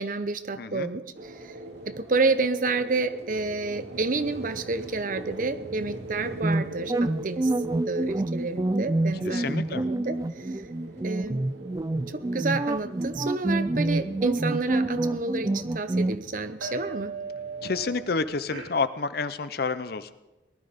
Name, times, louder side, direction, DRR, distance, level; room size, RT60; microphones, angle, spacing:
voice 1, 0.0-1.5 1.9-7.5 7.9-10.6 11.0-11.5 12.1-17.1, right 3 dB, 45° right, 11 dB, 0.8 m, -29 dB
voice 2, 0.6-0.9 9.2-9.9 17.6-20.1, left 4 dB, 55° left, 13 dB, 0.6 m, -29 dB
sound 1, 1.1-18.7, right 2 dB, 75° right, 2.5 m, -40 dB
sound 2, 6.4-16.2, right 2 dB, 20° right, 0.4 m, -27 dB
19.0 x 11.5 x 5.2 m, 1.1 s
head